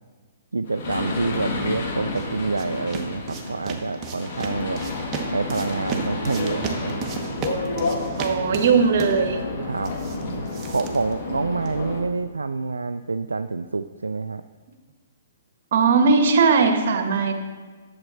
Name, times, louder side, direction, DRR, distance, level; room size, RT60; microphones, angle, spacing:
voice 1, 0.5-4.8 5.3-7.0 9.6-10.0 10.7-14.4, right 3 dB, 80° right, 9 dB, 0.3 m, -27 dB
sound 1, 0.7-12.0, left 3 dB, 50° left, 2.0 m, -30 dB
sound 2, 1.8-11.8, right 5 dB, 25° right, 1.1 m, -36 dB
voice 2, 8.2-9.4 15.7-17.4, right 5 dB, 50° right, 6 dB, 1.3 m, -19 dB
10.5 x 7.4 x 4.3 m, 1.4 s
figure-of-eight pair, 120°, 0 cm